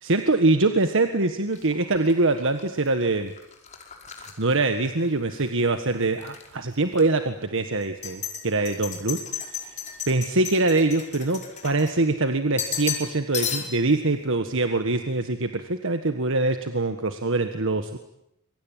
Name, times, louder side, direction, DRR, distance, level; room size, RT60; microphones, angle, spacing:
voice 1, 0.0-3.3 4.2-9.2 9.5-9.8 10.1-18.0, right 2 dB, 65° right, 7 dB, 1.6 m, -24 dB
sound 1, 1.5-5.5 5.8-6.5 6.9-7.0 7.8-12.2 12.6-13.1 13.3-13.9, left 7 dB, 35° left, 5.1 m, -34 dB
26.5 x 24.0 x 9.2 m, 0.80 s
head